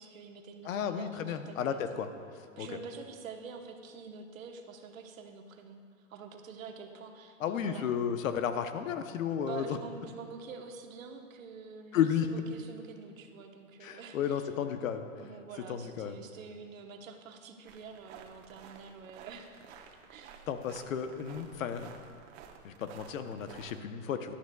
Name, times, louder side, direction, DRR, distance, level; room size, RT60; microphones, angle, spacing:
voice 1, 0.0-2.1 2.6-8.3 9.4-14.5 15.2-20.5, right 5 dB, 85° right, 5 dB, 1.2 m, -47 dB
voice 2, 0.7-2.1 2.6-2.7 7.4-9.6 11.9-12.3 13.8-15.1 15.7-16.2 20.5-21.9 22.6-24.3, left 8 dB, 85° left, 9 dB, 0.9 m, -33 dB
sound 1, 17.7-23.8, right 7 dB, 55° right, 1.1 m, -53 dB
15.5 x 11.5 x 2.3 m, 2.3 s
supercardioid pair, 150°, 39 cm